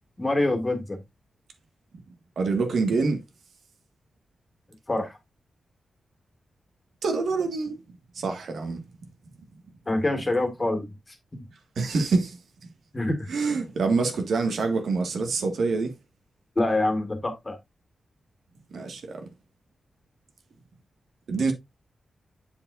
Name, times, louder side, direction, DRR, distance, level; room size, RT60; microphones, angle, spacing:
voice 1, 0.2-1.0 4.9-5.2 9.9-10.9 11.3-11.4 12.9-13.2 16.6-17.6, left 2 dB, 20° left, 2.0 m, -25 dB
voice 2, 2.4-3.2 7.0-7.8 8.2-8.8 11.8-12.4 13.3-15.9 18.7-19.2 21.3-21.5, right 4 dB, 75° right, 1.8 m, -25 dB
7.6 x 7.1 x 2.6 m
wide cardioid pair, 140°, 0 cm